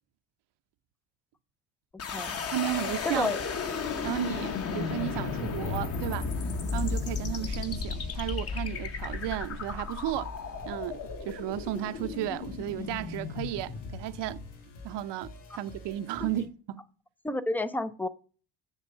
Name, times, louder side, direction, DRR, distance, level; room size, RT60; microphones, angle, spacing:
sound 1, 2.0-14.9, left 5 dB, 35° left, 0.9 m, -34 dB
voice 1, 2.5-3.4 4.0-6.3 6.7-10.3 10.6-14.4 14.8-16.8, right 13 dB, 80° right, 0.8 m, -34 dB
voice 2, 3.0-3.4 16.2-16.3 17.2-18.1, left 2 dB, 5° left, 0.3 m, -30 dB
sound 2, 3.9-16.5, left 2 dB, 75° left, 3.2 m, -50 dB
7.6 x 7.3 x 6.7 m
cardioid pair, 170°, 41 cm